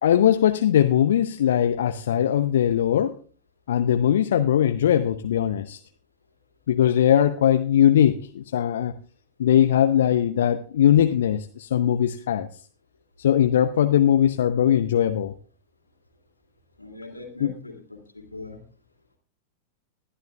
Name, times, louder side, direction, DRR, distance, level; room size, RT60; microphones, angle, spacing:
voice 1, 0.0-3.1 3.7-5.8 6.7-8.9 9.4-12.5 13.2-15.3 17.4-17.5, left 10 dB, 60° left, 9 dB, 0.6 m, -20 dB
voice 2, 16.8-18.6, left 2 dB, 85° left, 3 dB, 2.5 m, -41 dB
20.5 x 11.5 x 2.3 m, 0.40 s
figure-of-eight pair, 90°, 0 cm